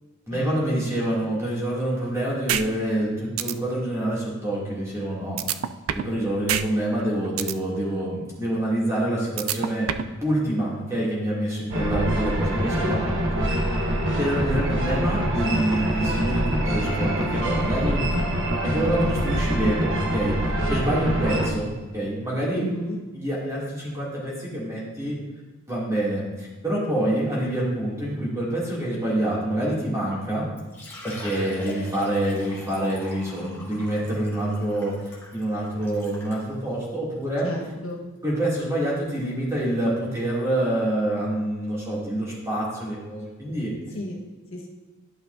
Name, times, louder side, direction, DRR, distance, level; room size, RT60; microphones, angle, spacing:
voice 1, 0.3-5.4 5.9-13.5 14.2-18.0 18.6-22.7 23.1-25.2 25.7-30.4 31.0-37.5 38.2-43.7, right 1 dB, 15° right, -7 dB, 2.6 m, -26 dB
voice 2, 0.9-1.3 22.5-23.0 37.4-38.0 43.9-44.2 44.5-44.7, left 1 dB, 75° left, 0 dB, 1.4 m, -34 dB
sound 1, 2.5-2.6 3.0-3.1 3.4-3.5 5.4-6.1 6.5-6.6 7.0-7.5 9.4-10.1, right 10 dB, 80° right, 0.4 m, -25 dB
sound 2, 11.7-21.5, equal, 65° right, 1.1 m, -25 dB
Liquid, 30.6-36.5 37.2-37.3 37.7-37.8 39.4-39.5 39.7-39.8, left 1 dB, 10° left, 1.8 m, -41 dB
11.5 x 5.8 x 2.7 m, 1.2 s
head